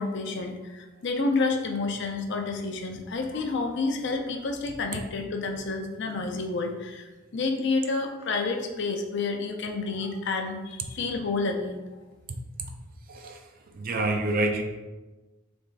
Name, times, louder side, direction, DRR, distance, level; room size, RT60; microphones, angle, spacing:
voice 1, 0.0-11.9, left 3 dB, 60° left, 4 dB, 0.5 m, -29 dB
voice 2, 13.7-14.6, right 2 dB, 45° right, 5 dB, 0.4 m, -26 dB
3.4 x 3.1 x 3.9 m, 1.2 s
head